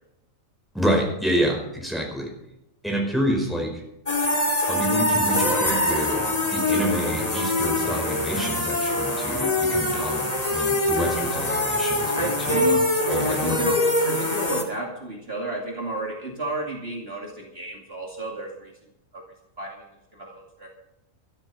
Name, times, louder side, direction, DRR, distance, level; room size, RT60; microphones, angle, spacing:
voice 1, 0.7-2.3 2.8-3.8 4.7-12.7 13.1-13.6, equal, ahead, 0 dB, 5.0 m, -28 dB
sound 1, 4.1-14.6, left 1 dB, 30° left, 2.5 m, -24 dB
voice 2, 12.1-12.8 13.2-18.7 19.1-19.2 19.6-20.7, right 1 dB, 50° right, 0 dB, 2.7 m, -31 dB
13.5 x 13.0 x 5.7 m, 0.86 s
omnidirectional pair, 1.4 m